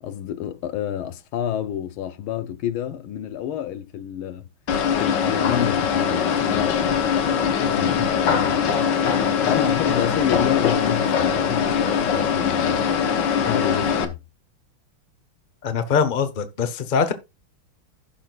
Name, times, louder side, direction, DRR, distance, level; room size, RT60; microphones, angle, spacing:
voice 1, 0.0-4.5 5.0-7.1 7.6-8.8 9.1-12.9 13.4-14.2, left 10 dB, 80° left, 1.6 m, -29 dB
sound 1, 4.7-14.0, left 7 dB, 65° left, 1.6 m, -21 dB
voice 2, 15.6-17.1, left 6 dB, 35° left, 0.8 m, -23 dB
16.0 x 6.1 x 2.4 m
omnidirectional pair, 2.3 m